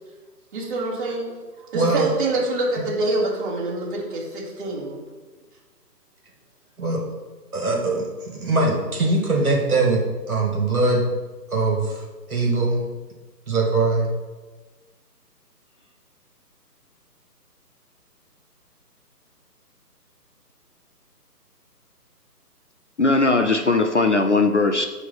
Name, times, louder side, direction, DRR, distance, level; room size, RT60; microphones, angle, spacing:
voice 1, 0.5-1.4 1.7-5.0, right 2 dB, 30° right, -7 dB, 2.6 m, -26 dB
voice 2, 1.7-2.1 6.8-7.0 7.5-8.1 8.3-10.0 10.3-11.0 11.5-12.0 12.3-12.8 13.5-14.1, right 3 dB, 60° right, 0 dB, 2.2 m, -21 dB
voice 3, 23.0-24.9, left 3 dB, 50° left, 6 dB, 0.5 m, -19 dB
9.2 x 3.3 x 5.8 m, 1.3 s
hypercardioid pair, 170°, 48 cm